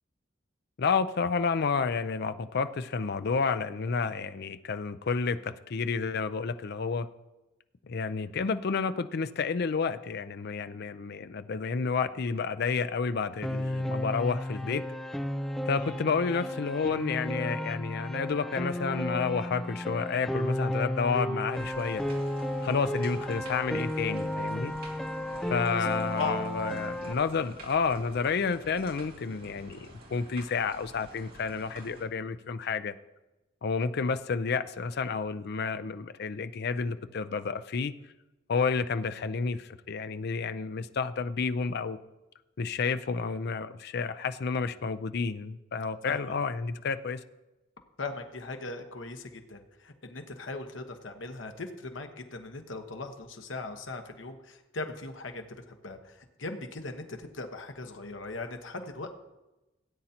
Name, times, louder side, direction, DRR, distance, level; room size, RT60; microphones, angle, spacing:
voice 1, 0.8-7.1 7.8-14.9 15.7-22.0 22.6-24.7 25.4-32.9 33.6-37.9 38.5-42.0 42.6-47.2, left 5 dB, 55° left, 12 dB, 0.5 m, -30 dB
Piano, 13.4-27.1, equal, ahead, 0.5 m, -33 dB
voice 2, 15.6-16.0 25.6-25.9 26.2-26.4 46.1-46.2 48.0-59.1, left 3 dB, 80° left, 6 dB, 1.2 m, -39 dB
sound 1, 21.5-32.0, right 2 dB, 50° right, 2.3 m, -50 dB
17.0 x 9.0 x 2.9 m, 1.0 s
head